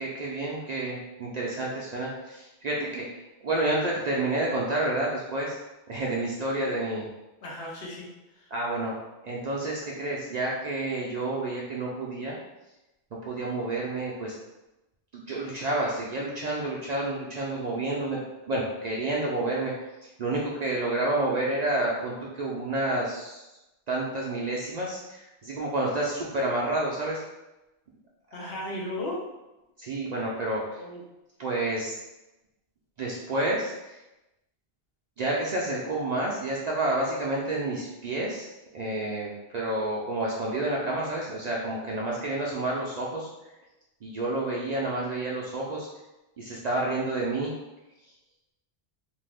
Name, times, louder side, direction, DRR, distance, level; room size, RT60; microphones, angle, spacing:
voice 1, 0.0-3.0 3.4-5.6 5.9-7.1 8.5-8.9 9.2-12.3 13.3-14.3 15.1-18.2 18.5-19.7 20.2-23.4 23.9-27.2 29.8-30.6 31.4-32.0 33.0-34.0 35.2-38.5 38.7-43.3 44.0-45.9 46.4-47.5, right 2 dB, 55° right, -4 dB, 0.5 m, -29 dB
voice 2, 7.4-8.5 28.3-29.2 30.8-31.0, left 1 dB, 70° left, -3 dB, 1.0 m, -36 dB
2.6 x 2.4 x 3.3 m, 0.99 s
omnidirectional pair, 1.1 m